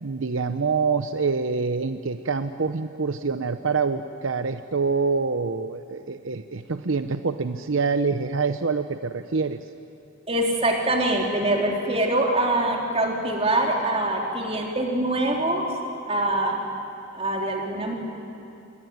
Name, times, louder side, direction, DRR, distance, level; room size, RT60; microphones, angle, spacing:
voice 1, 0.0-9.7, right 4 dB, 70° right, 9 dB, 0.8 m, -26 dB
voice 2, 10.3-15.7 16.1-16.6 17.1-17.9, right 1 dB, 30° right, 0 dB, 3.7 m, -24 dB
26.5 x 22.0 x 9.6 m, 2.6 s
head